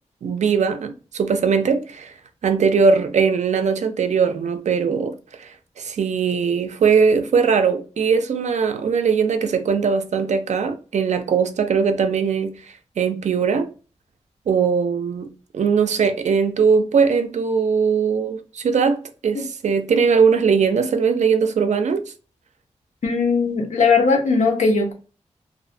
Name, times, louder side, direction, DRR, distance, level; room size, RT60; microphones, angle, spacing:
voice 1, 0.2-2.1 2.4-12.6 13.0-13.7 14.5-22.1, right 5 dB, 75° right, 0.4 m, -20 dB
voice 2, 23.0-24.9, left 4 dB, 85° left, 0.7 m, -19 dB
2.5 x 2.1 x 2.5 m
wide cardioid pair, 105°, 12 cm